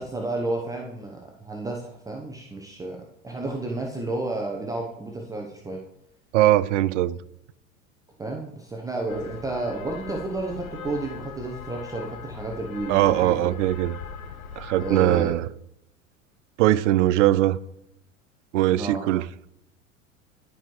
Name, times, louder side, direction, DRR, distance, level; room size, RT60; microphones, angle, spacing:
voice 1, 0.0-3.0 3.2-5.8 8.2-13.5 14.8-15.3 18.7-19.1, right 2 dB, 10° right, 0.8 m, -31 dB
voice 2, 6.3-7.2 12.9-14.0 14.6-15.5 16.6-17.6 18.5-19.3, right 14 dB, 65° right, 0.5 m, -21 dB
sound 1, 9.1-15.3, left 7 dB, 90° left, 0.7 m, -40 dB
12.0 x 4.7 x 3.2 m
hypercardioid pair, 85°, 41 cm